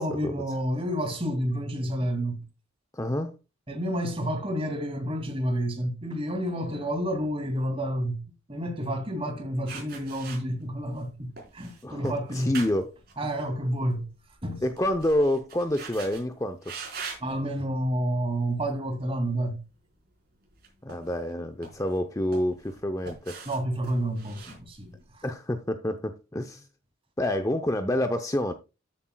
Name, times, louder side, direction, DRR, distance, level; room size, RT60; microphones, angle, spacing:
voice 1, 0.0-2.4 3.7-8.2 8.5-12.5 13.2-14.1 14.4-14.6 17.2-19.6 23.5-25.0, equal, 25° right, 2.4 m, -29 dB
voice 2, 2.9-3.3 11.8-12.9 14.6-16.7 20.8-23.4 25.2-26.7 27.2-28.5, left 1 dB, 15° left, 0.6 m, -28 dB
sound 1, 9.7-11.0 11.4-13.9 14.2-16.2 16.6-17.3 18.0-18.2 20.5-21.3 21.6-22.7 23.1-25.2, right 4 dB, 45° right, 4.2 m, -42 dB
13.0 x 8.6 x 2.2 m
head